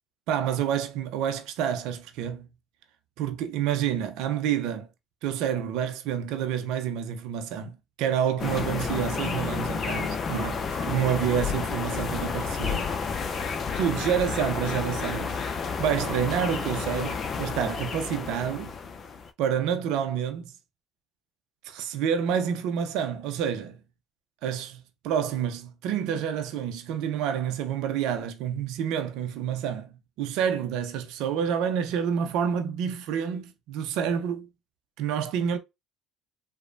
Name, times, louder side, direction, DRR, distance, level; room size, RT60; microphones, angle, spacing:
voice 1, 0.3-2.5 3.2-4.9 5.2-12.9 13.8-15.4 15.8-18.7 19.4-20.5 21.6-23.8 24.4-34.5 35.0-35.6, right 8 dB, 70° right, 0.5 m, -28 dB
sound 1, 8.4-19.3, left 5 dB, 45° left, 0.5 m, -31 dB
3.0 x 2.1 x 2.4 m
hypercardioid pair, 65°, 0 cm